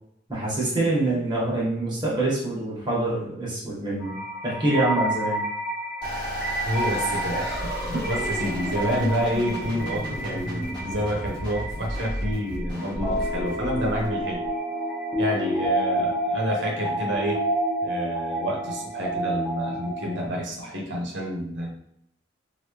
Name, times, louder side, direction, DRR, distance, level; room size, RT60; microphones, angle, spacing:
voice 1, 0.3-4.2 4.4-5.4 7.9-8.0, right 2 dB, 25° right, -7 dB, 1.2 m, -25 dB
sound 1, 4.0-20.3, right 1 dB, 5° left, 1.0 m, -30 dB
sound 2, 6.0-14.5, equal, 25° left, 1.3 m, -33 dB
voice 2, 6.7-14.4 15.2-17.4 17.8-21.7, equal, 75° right, -1 dB, 0.9 m, -29 dB
3.1 x 2.6 x 3.0 m, 0.73 s
head